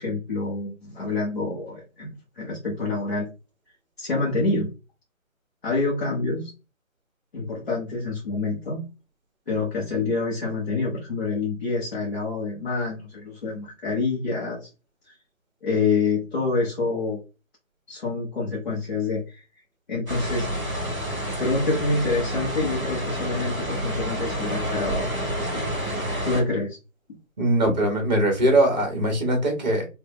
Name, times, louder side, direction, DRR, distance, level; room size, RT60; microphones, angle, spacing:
voice 1, 0.0-3.3 4.0-4.7 5.6-6.5 7.3-8.8 9.5-14.7 15.1-15.2 15.6-17.2 17.9-19.4 19.9-20.5 21.4-25.1 25.4-25.7 26.2-26.8, left 3 dB, 40° left, 1.3 m, -27 dB
sound 1, 20.1-26.4, equal, ahead, 1.9 m, -29 dB
voice 2, 27.4-29.9, right 1 dB, 30° right, 1.5 m, -21 dB
3.9 x 2.8 x 3.2 m
figure-of-eight pair, 160°, 41 cm